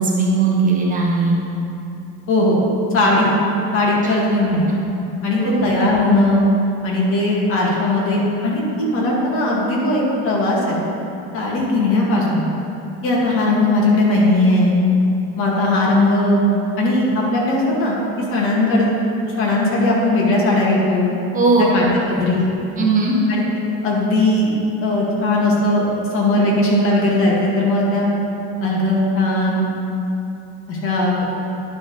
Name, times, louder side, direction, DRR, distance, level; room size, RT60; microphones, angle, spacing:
voice 1, 0.0-1.4 4.0-4.1 5.4-5.7 21.3-21.6 22.8-23.1, right 4 dB, 30° right, -2 dB, 1.1 m, -18 dB
voice 2, 2.3-2.6 2.9-3.3 3.7-4.7 5.2-6.5 6.8-10.8 11.3-12.4 13.0-14.8 15.4-16.5 16.8-18.9 19.2-21.1 21.6-21.8 22.2-22.5 23.3-23.4 23.8-24.5 24.8-25.9 26.1-28.1 28.6-29.6 30.7-31.2, left 1 dB, 45° left, -4 dB, 2.1 m, -18 dB
10.5 x 4.8 x 5.4 m, 2.8 s
cardioid pair, 145°, 29 cm